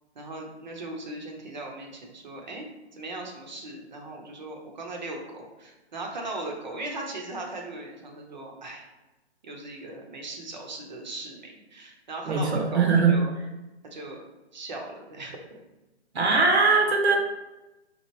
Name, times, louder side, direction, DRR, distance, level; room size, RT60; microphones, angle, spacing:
voice 1, 0.1-2.7 2.9-8.8 9.4-13.3 13.9-14.2 14.5-15.6, right 2 dB, 40° right, 1 dB, 0.7 m, -38 dB
voice 2, 12.3-13.2 16.1-17.2, right 4 dB, 70° right, 1 dB, 0.8 m, -21 dB
2.9 x 2.4 x 4.2 m, 1.0 s
hypercardioid pair, 165°, 34 cm